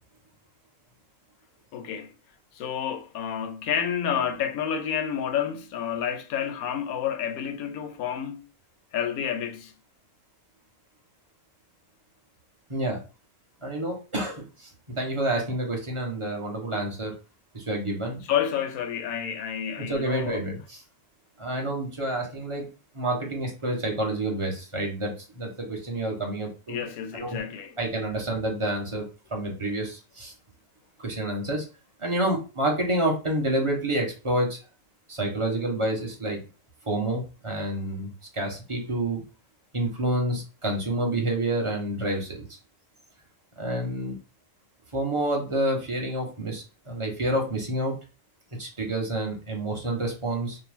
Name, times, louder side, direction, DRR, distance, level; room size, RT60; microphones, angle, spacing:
voice 1, 1.7-2.1 2.5-8.5 8.9-9.7 18.2-20.4 26.7-27.8, left 8 dB, 80° left, 1.1 m, -29 dB
voice 2, 12.7-13.0 13.6-17.1 17.5-18.2 19.8-20.8 21.4-22.7 22.9-26.8 27.1-27.4 27.8-30.3 31.0-31.6 32.0-34.6 35.1-36.4 36.8-39.2 39.7-42.5 43.6-44.1 44.9-48.0 48.6-50.6, right 1 dB, 20° right, 1.2 m, -28 dB
5.6 x 2.2 x 3.5 m
omnidirectional pair, 1.5 m